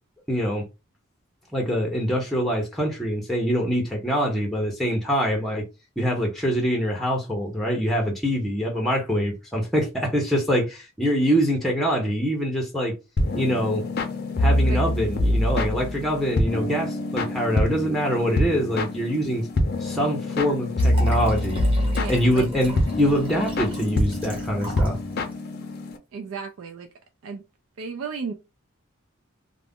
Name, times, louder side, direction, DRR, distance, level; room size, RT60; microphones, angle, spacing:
voice 1, 0.3-0.6 1.5-5.6 6.0-12.9 13.3-13.8 14.4-19.5 19.8-21.6 22.1-25.0, equal, ahead, 0.6 m, -24 dB
sound 1, 13.2-26.0, left 1 dB, 45° left, 0.5 m, -25 dB
Liquid, 20.7-25.0 25.3-25.4, equal, 25° right, 1.1 m, -37 dB
voice 2, 21.9-22.5 26.1-26.9 27.2-27.4 27.8-28.3, right 5 dB, 75° right, 0.4 m, -34 dB
2.4 x 2.0 x 3.5 m
head